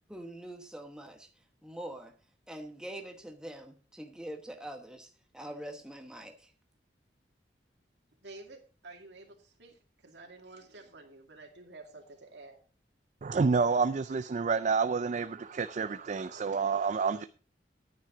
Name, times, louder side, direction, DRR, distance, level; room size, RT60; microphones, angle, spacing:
voice 1, 0.1-1.3 1.6-2.1 2.5-6.5, right 1 dB, 5° right, 1.0 m, -44 dB
voice 2, 8.2-12.6, right 2 dB, 75° right, 2.4 m, -51 dB
voice 3, 13.2-17.3, right 5 dB, 45° right, 0.4 m, -29 dB
10.5 x 9.2 x 3.9 m
head